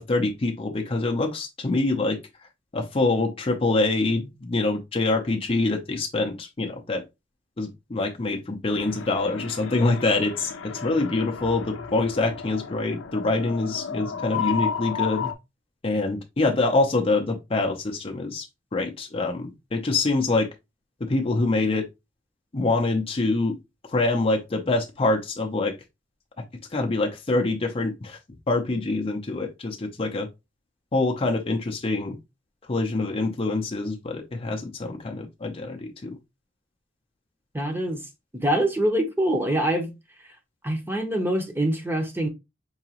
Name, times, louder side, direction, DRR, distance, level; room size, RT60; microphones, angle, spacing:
voice 1, 0.0-2.2 2.7-7.0 7.6-15.3 15.8-18.5 18.7-20.5 21.0-21.9 22.5-23.5 23.9-25.7 26.7-28.2 28.5-30.3 30.9-32.2 32.7-36.2, left 2 dB, 30° left, 0.6 m, -25 dB
sound 1, 8.7-15.3, left 7 dB, 75° left, 0.6 m, -33 dB
voice 2, 37.5-38.0 38.4-39.9 40.6-42.3, right 1 dB, 10° right, 0.7 m, -24 dB
4.7 x 2.9 x 2.8 m
head